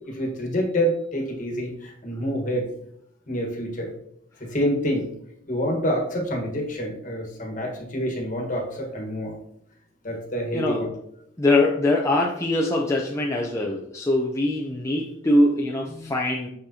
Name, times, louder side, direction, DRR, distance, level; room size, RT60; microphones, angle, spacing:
voice 1, 0.1-2.7 3.3-3.9 4.4-5.0 5.5-9.3 10.0-10.9, equal, 40° left, 1 dB, 1.4 m, -27 dB
voice 2, 11.4-16.5, left 1 dB, 15° left, -1 dB, 0.6 m, -22 dB
6.5 x 6.0 x 2.8 m, 0.73 s
head